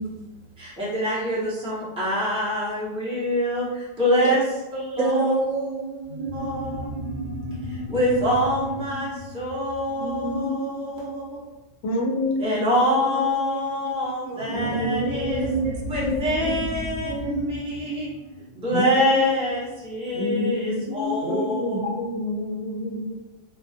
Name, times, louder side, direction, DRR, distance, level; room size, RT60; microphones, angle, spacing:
voice 1, 0.0-0.4 4.2-4.4 5.0-6.5 13.0-14.5 15.4-16.6 17.0-17.4 21.2-21.5, right 4 dB, 75° right, 0 dB, 0.9 m, -29 dB
voice 2, 0.6-4.4 4.7-5.3 6.3-6.9 7.7-11.4 12.4-15.5 15.9-18.2 18.5-21.8, left 1 dB, 5° right, -8 dB, 0.4 m, -25 dB
sound 1, 6.1-11.0 14.4-19.3, equal, 55° right, 0.6 m, -34 dB
voice 3, 9.9-10.8 11.8-13.2 14.5-15.4 15.8-16.6 18.7-19.3 20.1-23.1, left 1 dB, 65° left, -1 dB, 0.8 m, -28 dB
2.2 x 2.2 x 2.6 m, 1.0 s
omnidirectional pair, 1.3 m